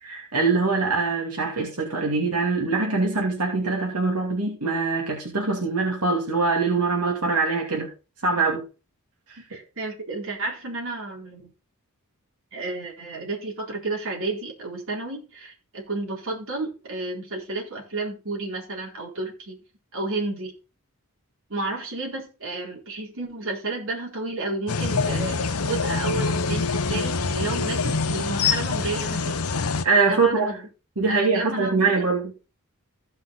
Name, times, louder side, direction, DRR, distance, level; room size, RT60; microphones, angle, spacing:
voice 1, 0.0-7.9 8.2-8.6 9.3-9.4 29.8-30.5 31.0-32.3, right 4 dB, 85° right, -1 dB, 2.5 m, -23 dB
voice 2, 9.5-11.5 12.5-19.6 19.9-20.5 21.5-29.5 30.0-30.7 31.1-32.1, right 2 dB, 60° right, -1 dB, 4.2 m, -31 dB
sound 1, 24.7-29.8, left 4 dB, 75° left, 0.9 m, -25 dB
15.5 x 5.6 x 4.1 m, 0.32 s
head